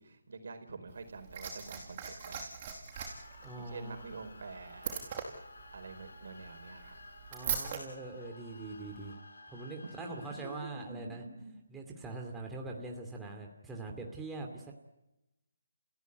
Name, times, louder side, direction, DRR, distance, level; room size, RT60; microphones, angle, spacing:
voice 1, 0.0-2.6 3.6-5.2 5.7-6.9 9.8-11.6, right 3 dB, 65° right, 6 dB, 4.5 m, -47 dB
Liquid, 0.9-7.8 8.9-9.0, right 7 dB, 35° right, 6.1 m, -41 dB
sound 1, 2.9-10.6, left 2 dB, 75° left, 3.8 m, -54 dB
voice 2, 3.4-4.0 7.3-9.2 9.5-11.2 11.7-14.7, right 3 dB, 10° right, 0 dB, 2.6 m, -43 dB
29.5 x 16.0 x 9.4 m, 0.95 s
figure-of-eight pair, 155°, 0 cm